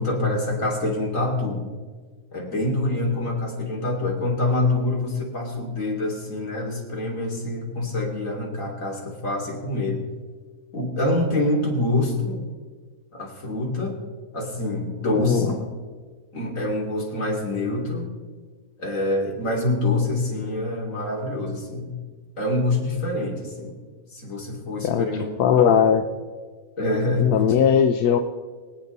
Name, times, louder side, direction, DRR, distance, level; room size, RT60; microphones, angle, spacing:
voice 1, 0.0-1.7 2.3-10.0 10.7-12.5 13.1-14.0 14.3-15.7 16.3-18.1 18.8-21.9 22.4-23.7 24.1-25.7 26.8-27.5, left 2 dB, 60° left, -2 dB, 3.4 m, -26 dB
voice 2, 25.4-26.0 27.2-28.2, left 8 dB, 90° left, 7 dB, 1.3 m, -18 dB
25.0 x 9.1 x 4.0 m, 1.5 s
omnidirectional pair, 1.6 m